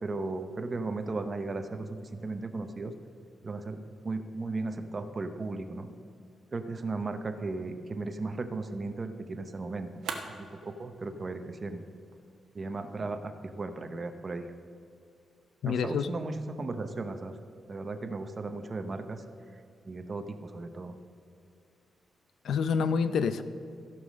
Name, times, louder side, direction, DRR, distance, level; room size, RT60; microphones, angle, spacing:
voice 1, 0.0-2.9 3.4-5.9 6.5-10.0 10.4-11.8 12.5-14.5 15.7-17.4 17.7-19.2 19.9-21.0, right 3 dB, 30° right, 8 dB, 0.7 m, -36 dB
sound 1, 7.7-13.6, right 5 dB, 80° right, 1.1 m, -47 dB
voice 2, 15.6-16.1 22.4-23.4, left 6 dB, 70° left, 12 dB, 0.5 m, -27 dB
15.0 x 5.6 x 6.3 m, 2.4 s
wide cardioid pair, 155°, 0 cm